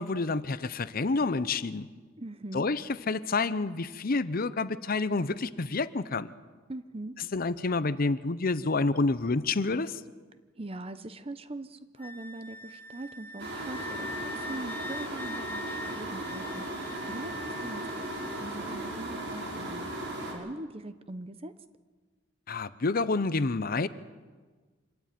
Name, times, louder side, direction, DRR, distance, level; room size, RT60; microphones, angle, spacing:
voice 1, 0.0-1.9 2.5-6.3 7.3-10.0 22.5-23.9, left 3 dB, 50° left, 15 dB, 0.7 m, -28 dB
voice 2, 2.2-2.7 6.7-7.2 10.6-16.7 17.1-18.0 18.4-19.9 20.3-21.5, right 2 dB, 30° right, 12 dB, 0.8 m, -41 dB
Wind instrument woodwind instrument, 12.0-18.4, left 2 dB, 10° left, 0.7 m, -43 dB
sound 1, 13.4-20.3, right 1 dB, 65° right, 5.5 m, -37 dB
25.5 x 13.0 x 9.3 m, 1.4 s
head